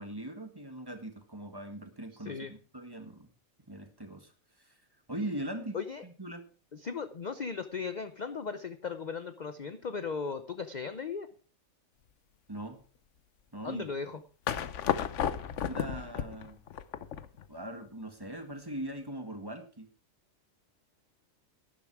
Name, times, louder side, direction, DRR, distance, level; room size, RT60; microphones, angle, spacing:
voice 1, 0.0-3.3 3.7-4.3 4.6-4.7 5.1-5.8 6.0-6.5 12.5-12.8 13.5-13.9 15.7-16.6 17.5-19.9, right 1 dB, 15° right, 6 dB, 1.7 m, -40 dB
voice 2, 6.7-11.3 13.6-14.2, left 5 dB, 40° left, 10 dB, 0.7 m, -37 dB
sound 1, 14.5-17.5, left 8 dB, 65° left, 1.1 m, -33 dB
11.5 x 11.0 x 4.7 m, 0.38 s
omnidirectional pair, 1.4 m